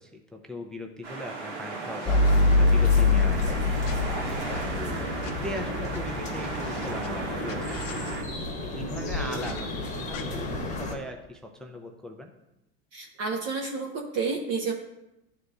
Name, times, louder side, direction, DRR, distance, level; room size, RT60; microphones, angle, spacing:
voice 1, 0.0-4.0 4.7-8.2 8.6-12.3, left 1 dB, ahead, 3 dB, 0.3 m, -39 dB
sound 1, 1.0-8.2, right 3 dB, 80° right, 1.4 m, -36 dB
sound 2, 1.9-3.3 3.8-5.3 5.9-6.0 6.2-7.1 7.5-8.2 9.3-9.6 10.1-10.2, left 8 dB, 45° left, 0.9 m, -46 dB
sound 3, 2.1-10.9, left 2 dB, 20° left, 1.1 m, -26 dB
voice 2, 12.9-14.7, right 4 dB, 45° right, 1 dB, 0.8 m, -30 dB
11.0 x 3.9 x 2.3 m, 0.90 s
supercardioid pair, 110°, 36 cm